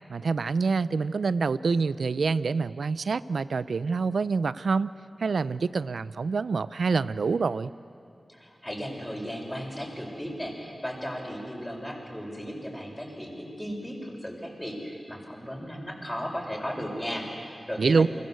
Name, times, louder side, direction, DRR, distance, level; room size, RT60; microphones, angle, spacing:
voice 1, 0.1-4.9 5.2-7.7 17.8-18.1, right 4 dB, 90° right, 16 dB, 0.6 m, -26 dB
voice 2, 8.3-18.1, equal, 10° left, -1 dB, 6.9 m, -36 dB
29.5 x 22.5 x 8.1 m, 2.6 s
wide cardioid pair, 55°, 0 cm